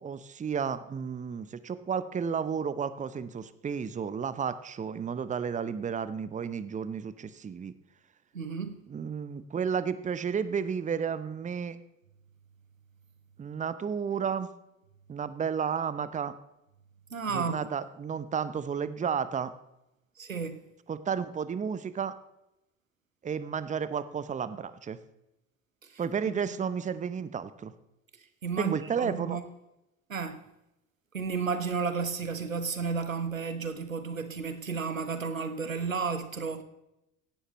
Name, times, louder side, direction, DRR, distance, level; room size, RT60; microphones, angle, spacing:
voice 1, 0.0-7.7 8.9-11.8 13.4-14.5 15.1-16.3 17.3-19.5 20.9-22.1 23.2-25.0 26.0-27.7 28.6-29.4, right 7 dB, 20° right, 0.8 m, -32 dB
voice 2, 8.3-8.8 17.1-17.6 20.2-20.6 25.8-26.0 28.4-29.4 30.1-30.4 31.1-36.6, right 5 dB, 85° right, 0.9 m, -32 dB
16.5 x 11.5 x 3.1 m
figure-of-eight pair, 60°, 39 cm